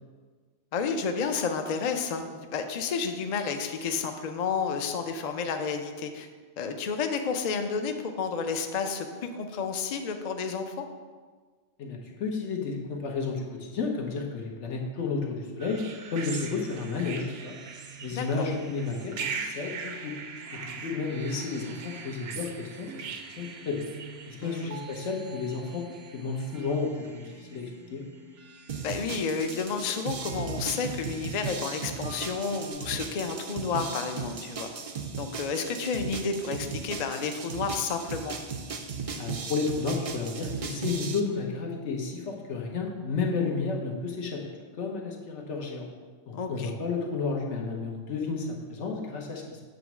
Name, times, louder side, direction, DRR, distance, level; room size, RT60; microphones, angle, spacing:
voice 1, 0.7-6.3 6.6-10.8 18.1-18.5 24.4-24.7 28.8-34.7 35.2-38.4 46.3-46.7, left 5 dB, 50° left, 6 dB, 0.5 m, -31 dB
voice 2, 11.8-15.8 16.1-17.5 18.0-20.1 20.6-22.9 23.4-23.8 24.3-25.8 26.1-28.0 39.2-44.4 44.8-45.9 46.5-49.4, left 4 dB, 80° left, 0 dB, 1.3 m, -32 dB
sound 1, 15.6-32.7, right 5 dB, 65° right, 0.8 m, -42 dB
sound 2, 28.7-41.2, right 5 dB, 45° right, 0.4 m, -37 dB
7.8 x 3.1 x 5.9 m, 1.5 s
omnidirectional pair, 1.2 m